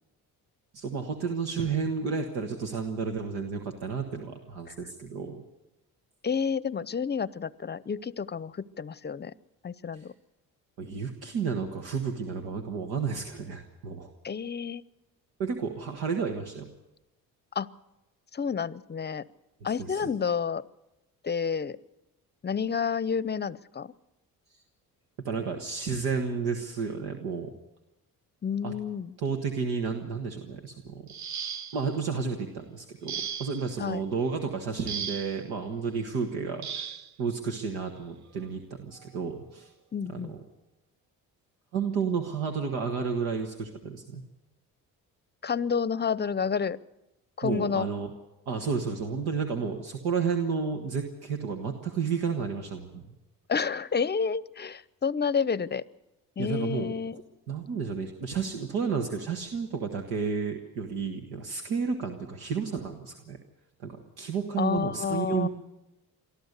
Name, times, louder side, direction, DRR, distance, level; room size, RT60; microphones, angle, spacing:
voice 1, 0.7-5.4 9.9-10.0 10.8-14.1 15.4-16.7 19.6-20.1 25.2-27.6 28.6-28.7 29.2-31.1 31.7-36.9 37.2-39.7 40.1-40.4 41.7-44.2 47.4-48.1 48.5-53.0 56.4-56.9 57.5-63.4 63.8-65.5, right 5 dB, 90° right, 3 dB, 1.6 m, -31 dB
voice 2, 6.2-9.3 9.6-10.1 14.2-14.8 17.5-17.7 18.3-19.2 19.6-20.6 21.2-21.8 22.4-23.9 28.4-29.1 33.8-34.0 39.9-40.3 45.4-46.8 47.4-47.9 53.5-55.8 56.4-57.2 64.6-65.5, left 6 dB, 25° left, 19 dB, 0.7 m, -30 dB
sound 1, 31.1-32.0 33.1-33.7 34.9-35.4 36.6-37.1 38.3-38.4 39.0-39.2, right 7 dB, 50° right, 0.8 m, -36 dB
23.5 x 13.5 x 8.2 m, 0.98 s
supercardioid pair, 65°, 38 cm